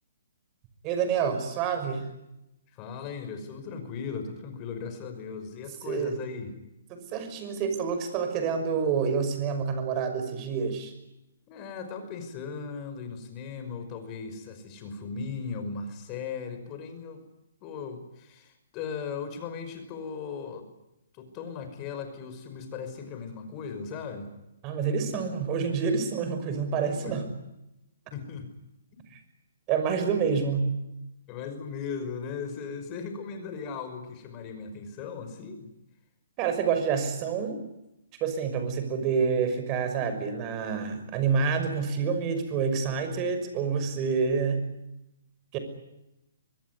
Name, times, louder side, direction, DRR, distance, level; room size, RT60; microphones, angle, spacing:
voice 1, 0.8-2.1 5.8-6.1 6.9-10.9 24.6-27.2 29.7-30.7 36.4-37.6 38.2-44.6 45.5-45.6, right 6 dB, 25° right, 8 dB, 5.9 m, -28 dB
voice 2, 2.7-6.5 11.5-17.2 17.6-20.7 21.1-24.3 26.9-27.1 28.1-28.5 31.3-35.7, left 5 dB, 25° left, 8 dB, 5.5 m, -37 dB
24.5 x 21.0 x 9.7 m, 0.90 s
hypercardioid pair, 155°, 0 cm